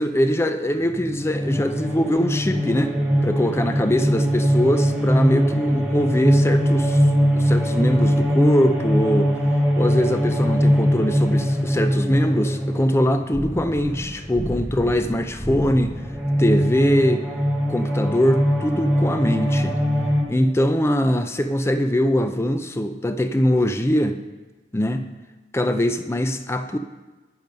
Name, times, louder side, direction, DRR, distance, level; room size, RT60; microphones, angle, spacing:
voice 1, 0.0-3.0 3.2-7.0 7.3-9.3 9.8-16.0 16.4-17.3 17.7-19.8 20.3-24.2 24.7-25.0 25.5-26.8, equal, 15° left, 8 dB, 0.5 m, -22 dB
sound 1, 0.8-20.2, equal, 5° right, 1.2 m, -22 dB
10.5 x 6.0 x 5.3 m, 1.2 s
head